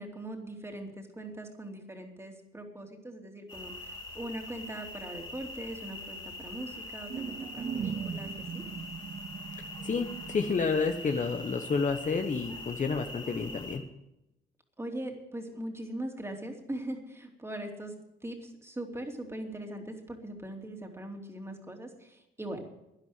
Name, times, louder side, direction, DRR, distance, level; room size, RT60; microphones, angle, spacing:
voice 1, 0.0-8.6 14.8-17.9 18.2-22.7, right 1 dB, 15° right, 3 dB, 2.9 m, -41 dB
sound 1, 3.5-13.8, left 2 dB, 25° left, 2.8 m, -43 dB
sound 2, 7.1-11.7, right 7 dB, 35° right, 0.5 m, -39 dB
voice 2, 9.8-13.8, left 4 dB, 40° left, 6 dB, 1.1 m, -30 dB
11.5 x 10.5 x 7.9 m, 0.89 s
cardioid pair, 90°, 20 cm